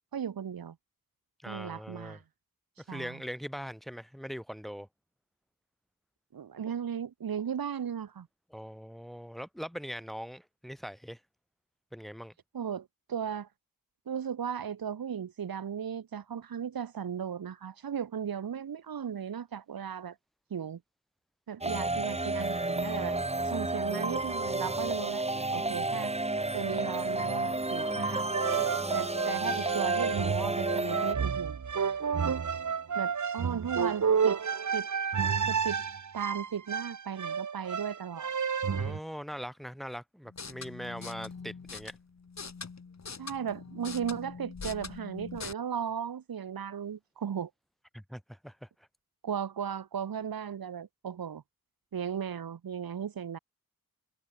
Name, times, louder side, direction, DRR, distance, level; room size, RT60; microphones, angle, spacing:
voice 1, 0.1-0.8 1.5-2.2 2.9-3.2 6.3-8.3 12.5-13.5 14.1-20.2 20.5-20.8 21.5-23.2 23.4-26.1 26.5-28.4 28.9-32.0 32.9-34.4 34.7-34.9 35.5-35.8 36.1-38.3 43.2-47.5 49.2-51.4 51.9-53.4, right 8 dB, 85° right, 2.8 m, -36 dB
voice 2, 1.4-2.2 2.9-4.9 8.5-11.2 11.9-12.3 38.8-42.0 47.9-48.7, equal, ahead, 4.2 m, -41 dB
sound 1, 21.6-31.1, right 2 dB, 20° right, 3.4 m, -31 dB
sound 2, 28.3-39.0, right 6 dB, 55° right, 2.1 m, -31 dB
sound 3, 40.3-45.5, left 5 dB, 50° left, 6.4 m, -43 dB
wide cardioid pair, 110°, 35 cm